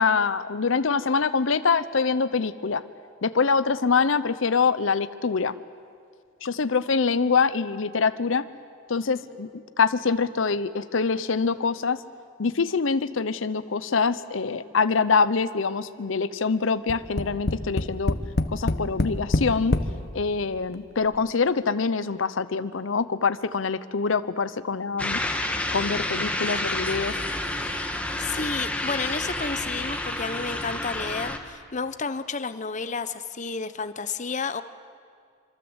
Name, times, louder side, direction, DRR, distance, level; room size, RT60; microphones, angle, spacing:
voice 1, 0.0-2.8 3.2-5.6 6.4-8.4 8.9-12.0 12.4-18.2 18.5-19.8 20.1-25.2 25.7-27.2, left 5 dB, 80° left, 13 dB, 0.7 m, -24 dB
Tap, 16.9-19.9 20.7-20.8 21.1-21.2, left 1 dB, 55° left, 1.2 m, -25 dB
sound 1, 25.0-31.4, left 1 dB, 5° left, 1.8 m, -29 dB
voice 2, 28.2-34.6, left 4 dB, 40° left, 11 dB, 0.9 m, -31 dB
26.0 x 25.5 x 8.1 m, 2.2 s
head